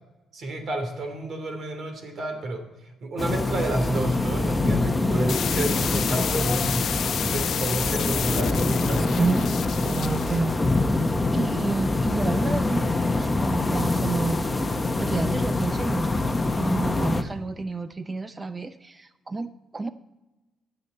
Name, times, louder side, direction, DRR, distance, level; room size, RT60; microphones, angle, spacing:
voice 1, 0.3-2.6 3.0-9.3 9.8-10.0, right 2 dB, 55° right, 5 dB, 2.8 m, -31 dB
sound 1, 3.2-17.2, left 2 dB, 20° left, 0.9 m, -25 dB
sound 2, 5.3-10.4, left 8 dB, 60° left, 0.5 m, -30 dB
voice 2, 9.2-9.5 9.9-10.5 11.3-14.4 15.0-19.9, right 3 dB, 25° right, 12 dB, 0.6 m, -29 dB
20.0 x 6.9 x 4.2 m, 1.0 s
cardioid pair, 90°, 0 cm